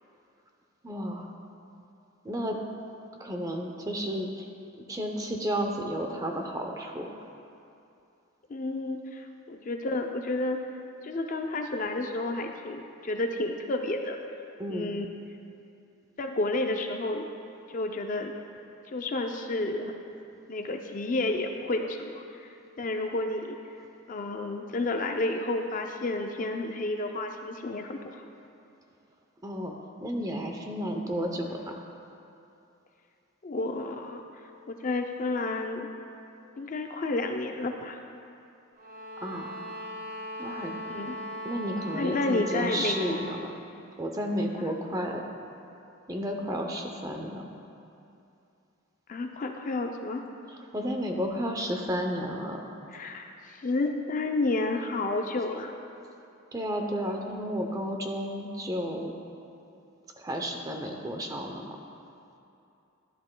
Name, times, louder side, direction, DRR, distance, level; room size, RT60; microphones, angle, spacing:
voice 1, 0.8-1.3 2.2-2.6 3.2-4.5 4.9-7.1 14.6-14.9 29.4-31.8 39.2-39.6 40.4-40.7 41.4-43.5 44.0-45.2 46.1-47.5 50.5-52.7 56.5-59.1 60.2-61.8, equal, 15° right, 2 dB, 0.6 m, -32 dB
voice 2, 8.5-10.6 11.0-14.2 14.7-15.1 16.2-17.3 17.7-18.3 18.9-19.9 20.5-23.6 24.1-28.3 33.4-34.2 34.7-35.9 36.6-38.0 40.9-41.2 41.9-43.3 49.1-50.2 52.9-55.7, left 2 dB, 35° left, 4 dB, 0.4 m, -31 dB
sound 1, 38.7-43.5, equal, 40° right, 1.7 m, -39 dB
12.0 x 11.0 x 2.2 m, 2.7 s
head